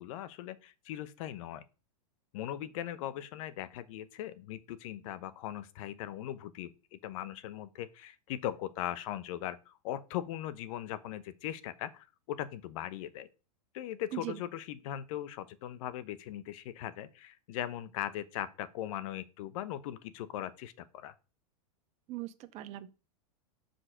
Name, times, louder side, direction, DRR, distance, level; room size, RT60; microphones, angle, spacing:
voice 1, 0.0-1.6 2.3-13.3 13.7-21.1, left 12 dB, 55° left, 0.8 m, -39 dB
voice 2, 22.1-22.9, right 15 dB, 35° right, 0.6 m, -40 dB
5.7 x 5.2 x 5.0 m
hypercardioid pair, 120°, 20 cm